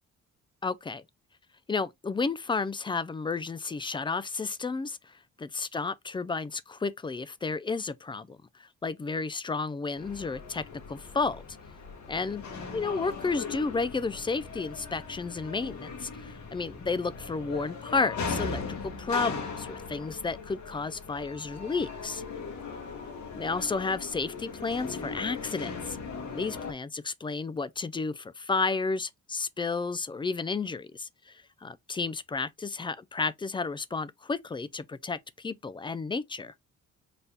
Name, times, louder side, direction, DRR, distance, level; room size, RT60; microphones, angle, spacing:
voice 1, 0.6-1.0 1.7-11.4 12.1-12.4 12.7-22.2 23.4-26.0 26.3-36.5, left 4 dB, 15° left, 0.3 m, -32 dB
sound 1, 10.0-26.7, left 4 dB, 70° left, 1.4 m, -39 dB
4.1 x 2.3 x 3.4 m
cardioid pair, 90°, 30 cm